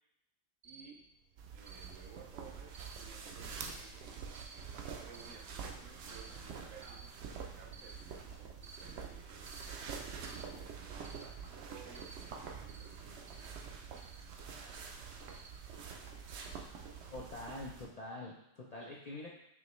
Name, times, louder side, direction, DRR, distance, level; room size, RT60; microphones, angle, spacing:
Cricket, 0.6-17.4, right 3 dB, 50° right, 0.4 m, -59 dB
voice 1, 0.6-1.0 1.5-9.5 9.9-13.6, right 5 dB, 90° right, 1 dB, 1.1 m, -57 dB
sound 1, 1.4-17.9, right 6 dB, 65° right, 0.8 m, -47 dB
voice 2, 17.1-19.3, left 2 dB, 55° left, -3 dB, 0.4 m, -45 dB
5.0 x 3.0 x 3.1 m, 0.85 s
omnidirectional pair, 1.3 m